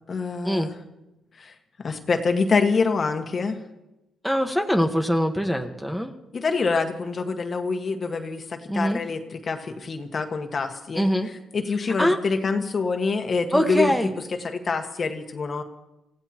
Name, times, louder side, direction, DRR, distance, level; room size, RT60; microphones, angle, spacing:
voice 1, 0.1-0.8 1.4-3.6 6.3-11.0 11.5-13.9 14.4-15.6, left 4 dB, 40° left, 5 dB, 1.6 m, -26 dB
voice 2, 4.2-6.1 8.7-9.0 10.9-11.3 12.0-12.2 13.5-14.1, equal, ahead, 5 dB, 1.3 m, -23 dB
27.5 x 16.0 x 3.0 m, 0.97 s
cardioid pair, 90°, 0 cm